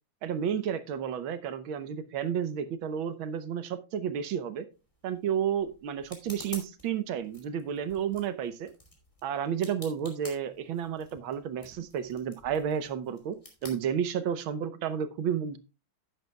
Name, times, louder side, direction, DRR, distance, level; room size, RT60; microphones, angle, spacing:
voice 1, 0.2-4.7 5.0-8.7 9.2-13.4 13.6-15.6, right 8 dB, 90° right, 12 dB, 1.7 m, -31 dB
sound 1, 4.7-14.6, left 1 dB, 15° left, 2.8 m, -51 dB
11.0 x 10.5 x 2.3 m, 0.29 s
omnidirectional pair, 2.2 m